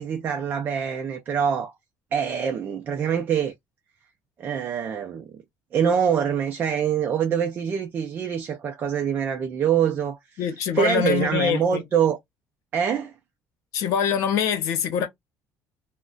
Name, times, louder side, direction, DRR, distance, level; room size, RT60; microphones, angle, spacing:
voice 1, 0.0-1.7 2.1-3.5 4.4-5.3 5.7-10.4 10.7-12.2 12.7-13.1, right 8 dB, 35° right, 0.4 m, -24 dB
voice 2, 10.4-11.8 13.7-15.1, left 8 dB, 65° left, 0.8 m, -24 dB
2.3 x 2.1 x 3.7 m
cardioid pair, 165°, 6 cm